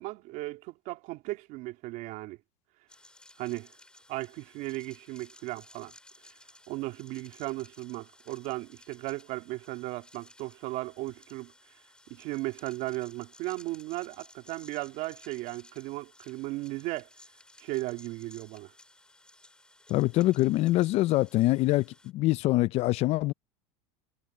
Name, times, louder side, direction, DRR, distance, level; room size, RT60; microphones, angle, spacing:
voice 1, 0.0-2.4 3.4-3.7 4.1-5.9 6.7-11.5 12.1-17.1 17.6-18.7, right 19 dB, 55° right, 3.0 m, -36 dB
sound 1, 2.9-22.1, left 2 dB, 5° left, 4.1 m, -57 dB
voice 2, 19.9-21.9 22.1-23.3, left 17 dB, 40° left, 0.4 m, -24 dB
supercardioid pair, 150°, 17 cm